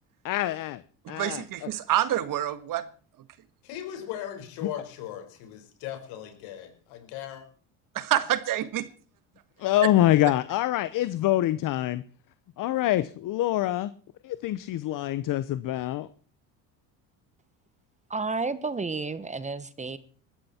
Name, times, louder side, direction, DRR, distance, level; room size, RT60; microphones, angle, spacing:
voice 1, 0.2-0.8 1.1-1.7 9.6-12.0 12.6-13.9 14.2-16.1, left 14 dB, 55° left, 1.0 m, -25 dB
voice 2, 1.1-2.9 8.0-8.9 9.8-9.9, right 12 dB, 60° right, 1.7 m, -27 dB
voice 3, 3.6-7.4, left 10 dB, 80° left, 5.1 m, -38 dB
voice 4, 18.1-20.0, right 4 dB, 20° right, 1.2 m, -31 dB
20.0 x 14.0 x 4.4 m
supercardioid pair, 95°, 38 cm